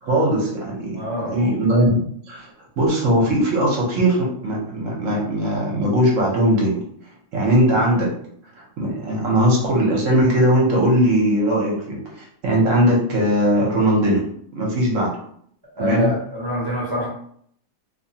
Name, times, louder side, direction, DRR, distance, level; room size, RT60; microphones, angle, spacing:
voice 1, 0.0-2.5 2.8-6.8 7.3-8.1 8.6-14.3 14.5-15.2 15.8-16.2, equal, 60° right, -2 dB, 0.9 m, -19 dB
voice 2, 0.9-1.5 15.8-17.1, equal, 25° right, -5 dB, 0.5 m, -26 dB
2.8 x 2.2 x 2.7 m, 0.64 s
omnidirectional pair, 1.8 m